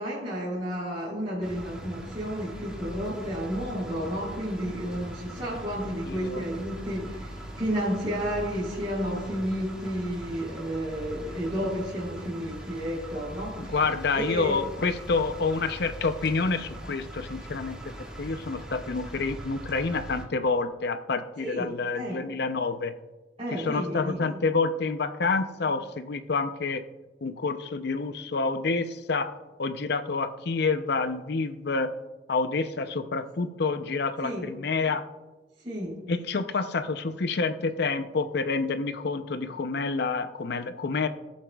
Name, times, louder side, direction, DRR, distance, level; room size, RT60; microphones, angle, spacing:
voice 1, 0.0-13.8 14.1-14.6 21.4-22.2 23.4-24.3 34.2-34.5 35.6-36.0, equal, 35° right, -8 dB, 3.3 m, -32 dB
sound 1, 1.4-20.2, right 1 dB, 5° right, 1.9 m, -41 dB
voice 2, 6.0-6.4 13.7-22.9 23.5-26.8 27.2-31.9 32.3-35.0 36.1-41.1, left 4 dB, 65° left, 10 dB, 0.6 m, -28 dB
19.0 x 7.3 x 2.3 m, 1.2 s
head